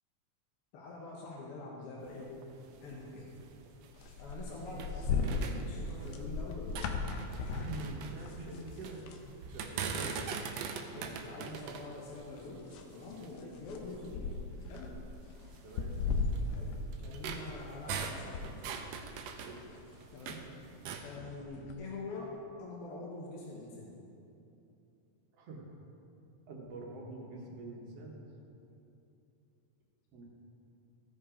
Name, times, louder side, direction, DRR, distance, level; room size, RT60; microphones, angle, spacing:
voice 1, 0.7-2.4 2.8-3.4 4.2-6.9 9.2-9.4 9.9-10.3 10.9-14.3 14.7-14.9 16.5-18.6 20.1-20.4 21.0-24.0, left 2 dB, 60° left, -3 dB, 1.6 m, -45 dB
sound 1, 2.0-4.9 5.2-6.3 6.6-9.0 9.4-13.4 14.0-14.1 14.6-14.8 15.5-20.5 20.8-21.1, right 6 dB, 80° right, 1.5 m, -42 dB
sound 2, 3.9-9.3 9.6-9.8 10.1-11.0 11.5-18.0 18.3-21.7, left 4 dB, 80° left, 1.4 m, -38 dB
voice 2, 7.6-9.1 9.5-10.1 10.9-11.1 13.8-14.0 15.6-16.0 19.4-19.6 25.4-25.6 26.5-28.2 30.1-30.2, right 2 dB, 60° right, -1 dB, 2.0 m, -45 dB
15.0 x 5.3 x 5.0 m, 2.8 s
omnidirectional pair, 3.6 m